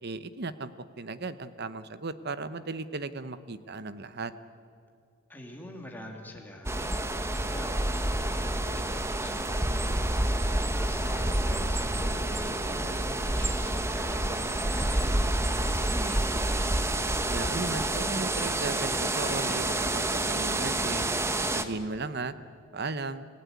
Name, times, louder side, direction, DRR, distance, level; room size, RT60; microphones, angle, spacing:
voice 1, 0.0-4.3 17.3-21.1 21.5-22.4 22.7-23.3, right 3 dB, 50° right, 13 dB, 1.0 m, -36 dB
voice 2, 5.3-6.9 7.4-10.4 10.7-16.3, left 1 dB, 10° left, 0 dB, 3.1 m, -44 dB
sound 1, 6.6-21.6, right 1 dB, 10° right, 1.0 m, -28 dB
26.5 x 16.5 x 9.5 m, 2.3 s
head